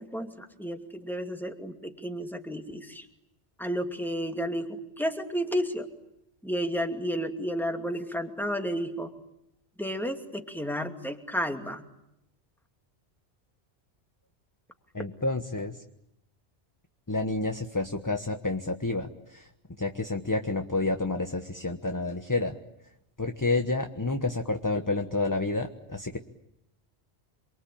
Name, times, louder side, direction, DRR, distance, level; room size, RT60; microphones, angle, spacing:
voice 1, 0.0-3.0 3.6-5.9 6.4-9.1 9.8-11.8, equal, ahead, 4 dB, 2.6 m, -32 dB
voice 2, 14.9-15.8 17.1-19.5 19.8-22.6 23.2-26.2, left 2 dB, 15° left, 6 dB, 1.3 m, -29 dB
28.5 x 23.5 x 8.8 m, 0.82 s
omnidirectional pair, 1.2 m